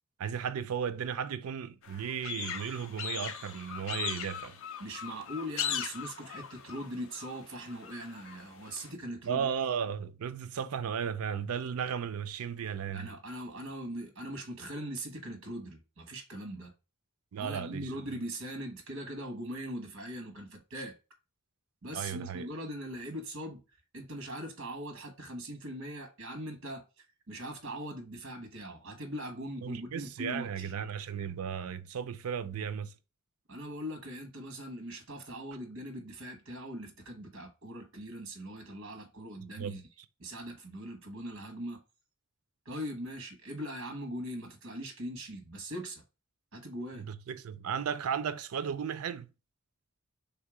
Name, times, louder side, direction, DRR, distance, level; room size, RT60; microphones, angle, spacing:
voice 1, 0.2-4.6 9.2-13.1 17.3-17.9 21.9-22.5 29.6-32.9 39.5-39.8 47.1-49.3, right 7 dB, 85° right, 0.4 m, -35 dB
sound 1, 1.8-8.9, left 8 dB, 65° left, 0.5 m, -39 dB
voice 2, 4.8-9.5 12.9-16.7 17.4-20.9 21.8-23.6 23.9-30.7 33.5-39.8 40.2-41.8 42.6-46.0 46.5-47.1, equal, 60° right, 1.2 m, -41 dB
3.5 x 2.8 x 4.7 m
head